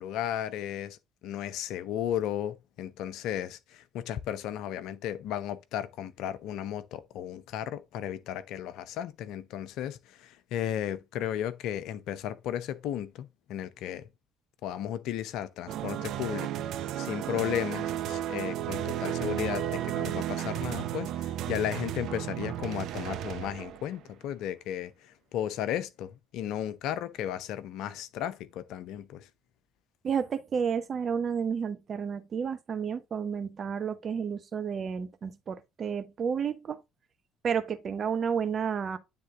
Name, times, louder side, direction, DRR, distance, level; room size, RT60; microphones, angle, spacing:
voice 1, 0.0-14.1 14.6-16.5 16.9-29.3, left 11 dB, 60° left, 0.6 m, -34 dB
sound 1, 15.7-24.0, right 11 dB, 55° right, 0.6 m, -33 dB
voice 2, 30.0-36.8 37.4-39.0, right 7 dB, 40° right, 1.0 m, -31 dB
9.5 x 3.7 x 3.7 m
figure-of-eight pair, 55°, 0 cm